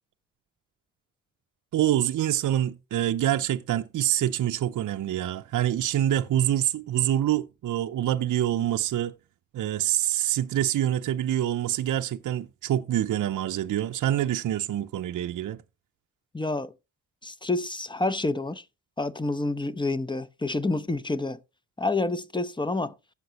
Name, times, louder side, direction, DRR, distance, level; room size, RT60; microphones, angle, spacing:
voice 1, 1.7-9.1 9.5-15.6, right 12 dB, 60° right, 0.6 m, -26 dB
voice 2, 16.3-16.7 17.2-18.6 19.0-21.4 21.8-22.9, left 2 dB, 15° left, 0.9 m, -28 dB
15.5 x 5.9 x 2.9 m
supercardioid pair, 45°, 34 cm